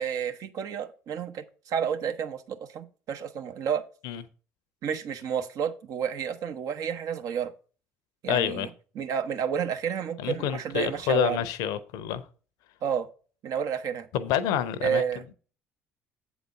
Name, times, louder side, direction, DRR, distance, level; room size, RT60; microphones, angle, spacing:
voice 1, 0.0-3.8 4.8-7.5 8.2-8.7 9.0-11.4 12.8-13.1 13.4-14.1 14.8-15.2, right 8 dB, 55° right, 0.9 m, -30 dB
voice 2, 8.3-8.7 10.2-12.2 14.1-15.0, left 10 dB, 60° left, 0.7 m, -28 dB
8.2 x 4.0 x 5.8 m
figure-of-eight pair, 55°, 7 cm